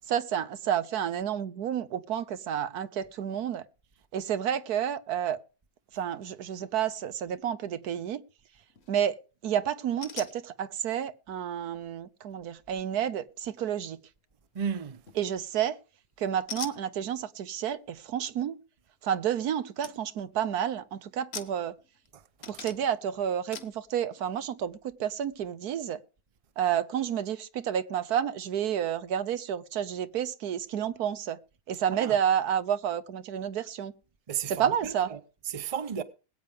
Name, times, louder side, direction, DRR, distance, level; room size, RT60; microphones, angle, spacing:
voice 1, 0.1-3.6 4.1-5.4 5.9-8.2 8.9-14.0 15.2-15.8 16.2-18.6 19.0-21.7 22.5-26.0 26.6-31.4 31.7-33.9 34.5-35.1, right 9 dB, 85° right, 1.4 m, -30 dB
sound 1, 8.7-9.1 10.0-10.4 15.1-15.5 16.5-16.8 19.3-19.4 19.8-20.0 20.3-20.7 21.3-22.1 22.4-23.0 23.5-23.8, left 5 dB, 45° left, 1.4 m, -41 dB
voice 2, 14.5-15.0 22.1-22.2 31.9-32.2 34.3-35.2 35.5-36.0, right 8 dB, 30° right, 0.7 m, -34 dB
20.5 x 9.0 x 3.6 m
omnidirectional pair, 1.6 m